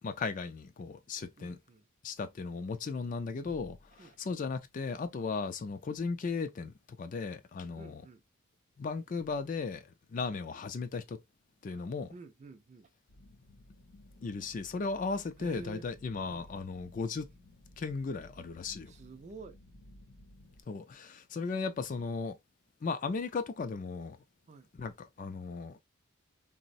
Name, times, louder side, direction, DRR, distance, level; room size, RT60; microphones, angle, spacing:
voice 1, 0.0-1.6 2.0-8.0 8.8-11.2 11.6-12.1 14.2-17.3 17.8-18.9 20.7-22.4 22.8-24.2 24.7-25.8, left 4 dB, 40° left, 0.3 m, -36 dB
voice 2, 1.4-1.8 4.0-4.4 7.8-8.2 11.7-11.8 12.1-12.9 15.4-15.9 16.3-16.5 18.9-19.6 24.5-24.7, right 4 dB, 35° right, 0.3 m, -49 dB
sound 1, 13.1-20.6, left 1 dB, 75° left, 0.6 m, -57 dB
3.8 x 2.0 x 2.5 m
head